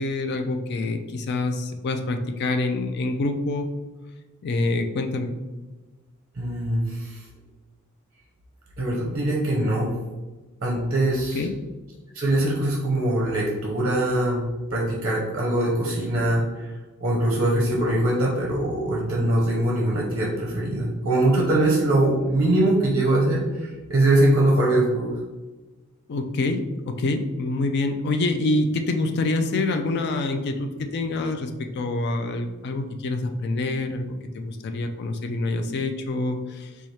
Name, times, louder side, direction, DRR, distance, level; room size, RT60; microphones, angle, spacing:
voice 1, 0.0-3.7 4.4-5.3 11.3-11.6 26.1-36.7, left 2 dB, 50° left, 6 dB, 0.3 m, -26 dB
voice 2, 6.3-7.2 8.8-10.0 10.6-11.4 12.1-16.7 17.0-25.1, right 1 dB, 40° right, -3 dB, 0.6 m, -22 dB
4.1 x 2.3 x 3.1 m, 1.2 s
head